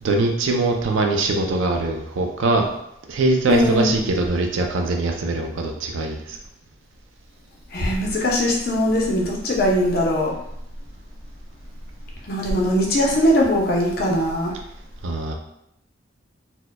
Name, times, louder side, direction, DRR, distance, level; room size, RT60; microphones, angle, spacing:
voice 1, 0.0-2.7 3.1-6.4 15.0-15.3, right 2 dB, 75° right, 3 dB, 0.4 m, -22 dB
voice 2, 3.5-4.0 7.7-10.3 12.3-14.5, equal, 50° left, -2 dB, 0.6 m, -20 dB
4.3 x 2.1 x 2.2 m, 0.77 s
head